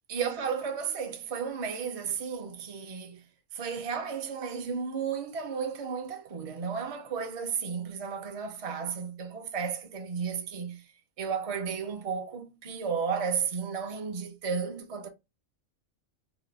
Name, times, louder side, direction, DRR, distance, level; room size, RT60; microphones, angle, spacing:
voice 1, 0.1-3.2 3.5-10.8 11.2-15.1, right 6 dB, 50° right, 0.4 m, -33 dB
2.9 x 2.2 x 3.3 m
omnidirectional pair, 1.4 m